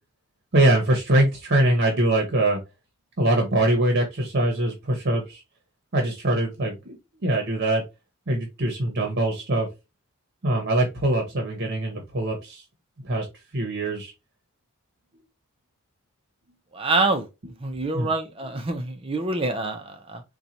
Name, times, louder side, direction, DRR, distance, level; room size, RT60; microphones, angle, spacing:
voice 1, 0.5-2.6 3.2-5.4 5.9-7.8 8.3-9.7 10.4-12.6 13.0-13.3 13.5-14.1 17.9-18.1, right 1 dB, 50° right, 0.9 m, -23 dB
voice 2, 16.7-17.3 17.6-20.2, right 3 dB, 25° right, 0.6 m, -26 dB
3.9 x 2.3 x 2.8 m
head